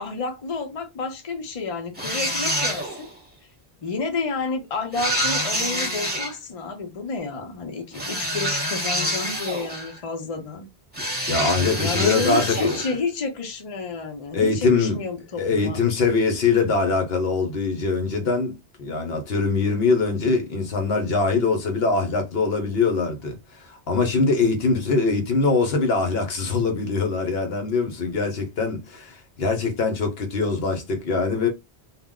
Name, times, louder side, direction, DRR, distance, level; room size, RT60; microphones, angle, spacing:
voice 1, 0.0-3.1 3.8-10.7 11.8-15.8, left 4 dB, 40° left, 0.6 m, -30 dB
sound 1, 2.0-3.1 4.9-6.3 7.9-10.0 10.9-13.0, equal, 10° right, 1.0 m, -27 dB
voice 2, 11.3-12.8 14.3-15.0 15.4-31.5, left 4 dB, 70° left, 0.9 m, -23 dB
2.4 x 2.0 x 3.5 m
omnidirectional pair, 1.1 m